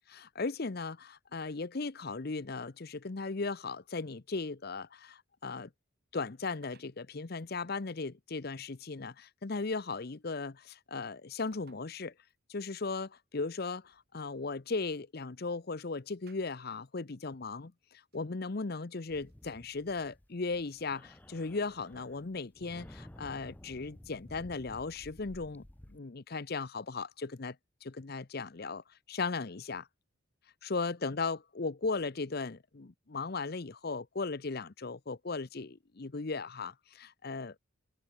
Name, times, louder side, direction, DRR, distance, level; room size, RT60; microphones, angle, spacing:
voice 1, 0.1-5.7 6.1-12.1 12.5-25.6 25.9-27.6 27.8-29.9 30.6-37.6, left 4 dB, 50° left, 0.7 m, -37 dB
sound 1, 6.4-7.0 8.3-8.4 9.9-10.3 11.5-11.9 12.3-12.4 13.8-15.0 16.3-16.9 17.8-17.9 18.1-18.3 19.3-19.8 20.3-22.1, right 4 dB, 45° right, 2.6 m, -65 dB
sound 2, 19.1-20.5 20.8-26.0, left 1 dB, 10° left, 0.5 m, -53 dB
head